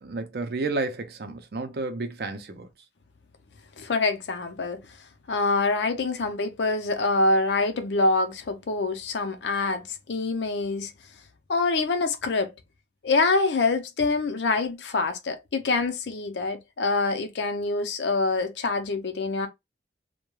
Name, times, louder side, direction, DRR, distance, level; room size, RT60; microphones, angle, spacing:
voice 1, 0.0-2.7, right 3 dB, 60° right, 0.5 m, -31 dB
voice 2, 3.8-4.8 5.3-10.9 11.5-12.5 13.0-19.5, left 3 dB, 80° left, 0.5 m, -25 dB
2.2 x 2.1 x 3.0 m
head